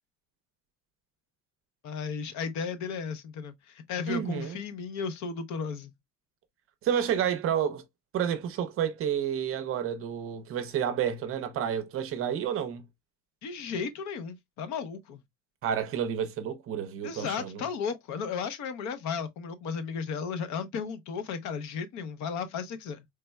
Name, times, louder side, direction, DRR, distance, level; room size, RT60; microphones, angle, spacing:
voice 1, 1.8-5.9 13.4-15.2 17.0-23.0, left 6 dB, 55° left, 0.7 m, -34 dB
voice 2, 4.1-4.6 6.8-7.8 8.1-12.8 15.6-17.6, right 9 dB, 40° right, 0.6 m, -30 dB
4.2 x 3.3 x 2.2 m
cardioid pair, 175°, 35 cm